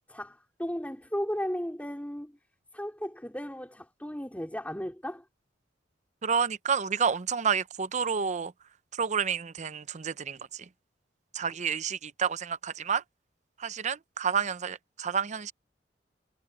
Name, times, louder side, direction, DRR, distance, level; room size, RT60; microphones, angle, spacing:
voice 1, 0.1-2.4 2.7-5.2 11.4-11.5, equal, 10° left, 4.2 m, -35 dB
voice 2, 6.2-8.5 9.0-10.6 11.3-13.0 13.6-15.5, right 6 dB, 40° right, 0.6 m, -29 dB
head